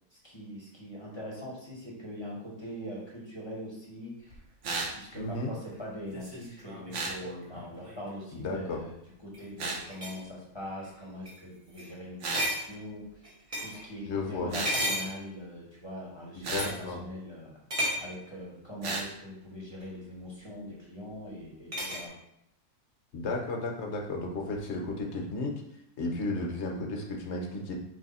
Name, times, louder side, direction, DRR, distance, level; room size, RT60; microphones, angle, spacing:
voice 1, 0.1-4.4 4.9-8.9 9.2-13.1 13.6-17.6 18.0-22.1, equal, 25° left, -4 dB, 0.8 m, -42 dB
sound 1, 4.3-8.1 9.2-9.5 9.8-10.2 10.8-11.0 11.2-11.4 11.7-11.9 12.3-13.9 14.5-15.7 16.5-16.9 17.7-18.2 19.8-19.9 21.7-22.1, equal, 30° right, 0.6 m, -35 dB
sound 2, 4.6-4.9 6.9-7.2 9.6-9.8 12.2-12.5 14.5-14.8 16.4-16.7 18.8-19.1, right 3 dB, 60° right, 1.0 m, -33 dB
voice 2, 5.1-5.5 8.3-8.8 14.1-14.5 16.4-17.0 23.1-25.5 26.0-27.7, left 2 dB, 55° left, 1 dB, 0.9 m, -33 dB
3.5 x 3.0 x 4.1 m, 0.77 s
omnidirectional pair, 1.6 m